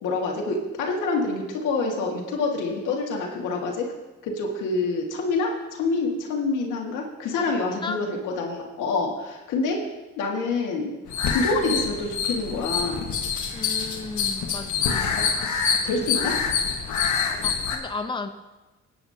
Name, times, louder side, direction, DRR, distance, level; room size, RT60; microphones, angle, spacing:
voice 1, 0.0-3.8 4.2-9.8 10.2-10.9 11.3-13.1 15.1-15.3 15.8-16.4, left 3 dB, 90° left, 0 dB, 2.0 m, -27 dB
sound 1, 11.1-17.8, left 6 dB, 75° left, 1.6 m, -26 dB
voice 2, 13.5-15.3 17.4-18.3, left 3 dB, 15° left, 7 dB, 0.8 m, -34 dB
19.5 x 9.3 x 2.9 m, 1.1 s
cardioid pair, 90°, 30 cm